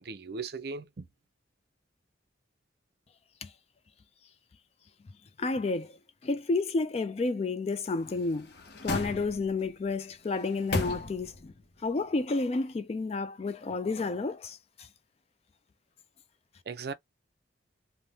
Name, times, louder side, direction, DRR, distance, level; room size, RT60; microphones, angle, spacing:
voice 1, 0.0-1.1 16.7-16.9, right 4 dB, 55° right, 0.5 m, -38 dB
voice 2, 5.4-5.9 6.2-8.5 8.8-11.5 11.8-14.9, left 3 dB, 35° left, 0.3 m, -31 dB
sound 1, 8.0-9.7 10.2-11.5 11.9-12.0, left 2 dB, 55° left, 0.7 m, -36 dB
3.3 x 2.1 x 2.7 m
head